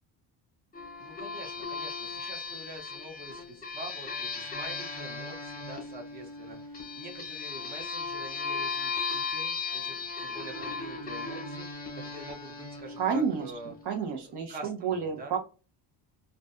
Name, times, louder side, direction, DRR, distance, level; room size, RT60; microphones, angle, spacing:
sound 1, 0.7-13.9, left 4 dB, 20° left, 0.8 m, -37 dB
voice 1, 1.0-13.7 14.2-15.4, right 2 dB, 20° right, 3 dB, 0.8 m, -46 dB
voice 2, 13.0-15.4, right 6 dB, 60° right, 2 dB, 0.9 m, -31 dB
2.5 x 2.2 x 2.4 m, 0.33 s
cardioid pair, 90°, 45 cm